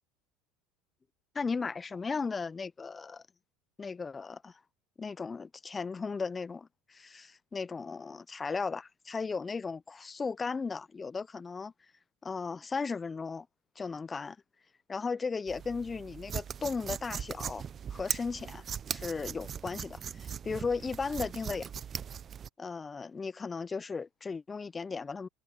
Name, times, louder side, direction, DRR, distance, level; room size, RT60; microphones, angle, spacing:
voice 1, 1.3-3.2 3.8-4.6 5.0-11.7 12.2-13.5 13.8-14.4 14.9-17.6 17.9-18.6 18.9-21.6 22.6-25.3, left 4 dB, 25° left, 0.8 m, -36 dB
sound 1, 15.5-22.5, right 8 dB, 35° right, 1.1 m, -39 dB
hypercardioid pair, 75°, 0 cm